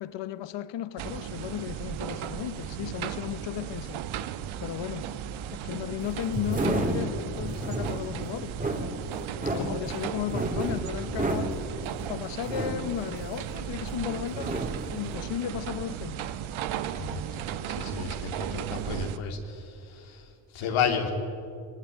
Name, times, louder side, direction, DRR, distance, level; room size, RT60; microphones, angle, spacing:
voice 1, 0.0-4.0 4.6-5.1 5.6-8.5 9.5-11.6 12.1-14.6 14.9-16.3, left 11 dB, 65° left, 1.1 m, -35 dB
sound 1, 1.0-19.2, right 10 dB, 80° right, 1.2 m, -36 dB
sound 2, 6.0-13.9 14.2-15.0, right 1 dB, 15° right, 2.8 m, -32 dB
voice 2, 17.0-21.1, left 6 dB, 90° left, 3.0 m, -32 dB
21.0 x 19.0 x 9.3 m
cardioid pair, 105°, 47 cm